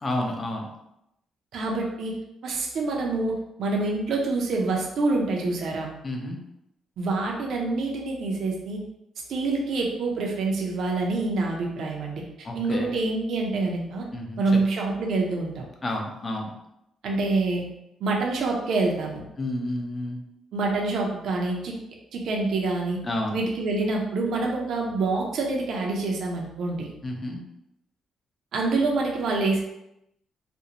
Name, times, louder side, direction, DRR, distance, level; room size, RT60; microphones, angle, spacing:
voice 1, 0.0-0.7 6.0-6.4 12.4-12.9 14.1-14.6 15.8-16.5 19.4-20.2 23.0-23.4 27.0-27.4, left 1 dB, 30° left, 1 dB, 0.5 m, -30 dB
voice 2, 1.5-2.1 2.4-5.9 7.0-8.8 9.3-14.0 14.4-15.6 17.0-17.6 18.0-19.2 20.5-21.7 22.1-23.0 23.3-26.9 28.5-29.6, right 3 dB, 70° right, -1 dB, 0.5 m, -26 dB
2.5 x 2.0 x 2.8 m, 0.83 s
cardioid pair, 90°, 0 cm